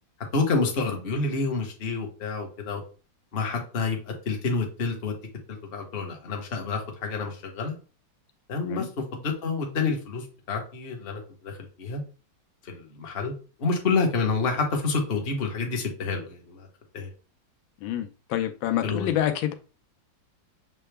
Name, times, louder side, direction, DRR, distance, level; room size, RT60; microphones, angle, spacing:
voice 1, 0.3-2.8 3.3-5.2 5.5-7.8 8.5-12.0 12.6-13.3 13.6-16.7 16.9-17.1 18.8-19.1, left 4 dB, 40° left, 2 dB, 1.0 m, -28 dB
voice 2, 17.8-19.5, left 11 dB, 85° left, 7 dB, 1.4 m, -27 dB
6.8 x 2.3 x 3.3 m, 0.35 s
omnidirectional pair, 2.1 m